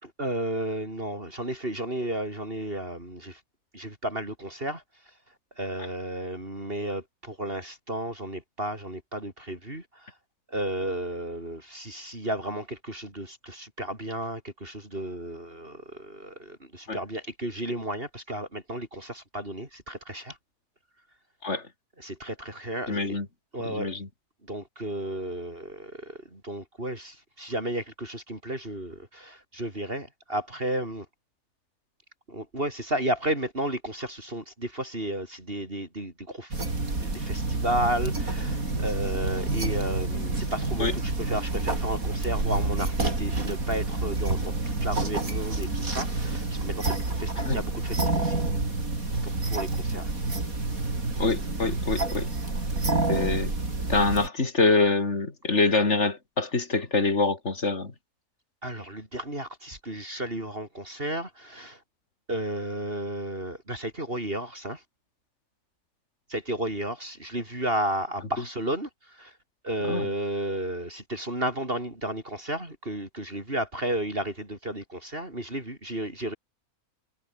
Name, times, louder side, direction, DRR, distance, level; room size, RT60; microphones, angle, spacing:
voice 1, 0.0-3.4 3.7-4.8 5.6-10.1 10.5-20.4 22.0-23.0 23.5-23.9 24.5-31.1 32.3-36.5 37.0-48.4 49.2-50.1 52.8-53.0 58.6-61.8 62.3-64.8 66.3-69.3 69.6-76.4, right 1 dB, 35° right, 5.7 m, -33 dB
voice 2, 22.9-23.3 23.6-24.1 40.8-40.9 47.4-47.6 51.2-52.3 53.1-53.5 53.9-57.9 69.9-70.1, left 3 dB, 45° left, 3.3 m, -25 dB
sound 1, 36.5-54.3, right 2 dB, 65° right, 5.2 m, -28 dB
omnidirectional pair, 1.6 m